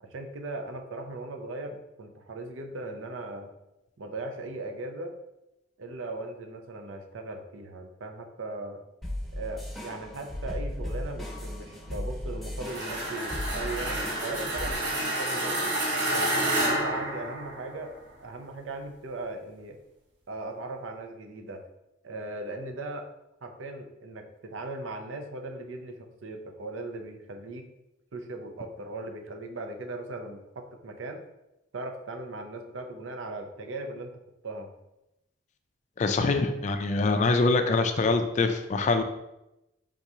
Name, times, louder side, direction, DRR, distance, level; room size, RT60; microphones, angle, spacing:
voice 1, 0.0-3.5 4.0-5.1 5.8-8.8 9.3-15.8 16.1-17.9 18.2-19.8 20.3-21.6 22.0-23.1 23.4-27.7 28.1-31.2 31.7-34.2 34.4-34.7, right 2 dB, 80° right, 4 dB, 0.6 m, -38 dB
sound 1, 9.0-14.7, left 1 dB, ahead, 1.0 m, -36 dB
sound 2, 12.6-17.9, right 1 dB, 65° right, 1.0 m, -29 dB
voice 2, 36.0-39.0, left 3 dB, 40° left, 7 dB, 0.3 m, -24 dB
4.7 x 3.8 x 2.8 m, 0.92 s
head